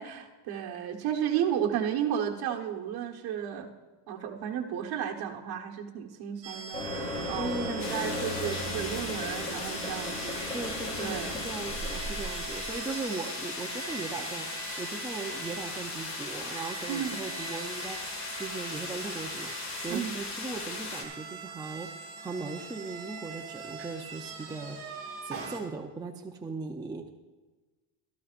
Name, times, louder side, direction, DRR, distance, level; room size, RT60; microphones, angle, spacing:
voice 1, 0.0-3.7 4.1-10.4 11.0-11.4 16.9-17.2 19.9-20.2, right 9 dB, 50° right, 2 dB, 1.4 m, -33 dB
sound 1, 6.4-25.6, right 5 dB, 30° right, 2.7 m, -43 dB
sound 2, 6.7-12.8, left 1 dB, 15° left, 3.3 m, -37 dB
voice 2, 7.4-7.8 10.3-19.5 19.8-24.8 25.2-27.1, right 3 dB, 10° right, 2 dB, 0.6 m, -38 dB
sound 3, 7.8-21.0, left 3 dB, 35° left, 2.1 m, -38 dB
15.0 x 13.5 x 2.6 m, 1.2 s
cardioid pair, 140°, 47 cm